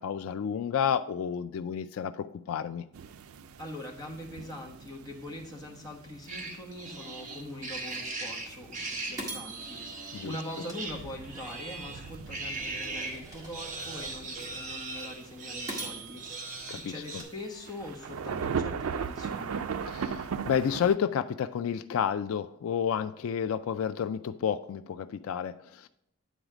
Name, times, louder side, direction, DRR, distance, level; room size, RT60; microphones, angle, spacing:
voice 1, 0.0-2.8 10.1-10.4 16.7-17.2 19.9-25.9, left 8 dB, 80° left, 13 dB, 0.3 m, -31 dB
sound 1, 2.9-21.0, right 6 dB, 90° right, 0.4 m, -40 dB
voice 2, 3.6-19.6, left 1 dB, 20° left, -1 dB, 1.3 m, -43 dB
sound 2, 6.3-13.2 13.5-17.2, right 3 dB, 35° right, 1.0 m, -39 dB
sound 3, 7.9-8.0 8.5-8.6 9.2-11.5 12.0-14.5 15.0-15.1 15.7-18.0, right 2 dB, 15° right, 1.8 m, -45 dB
9.2 x 4.0 x 4.9 m, 0.78 s
head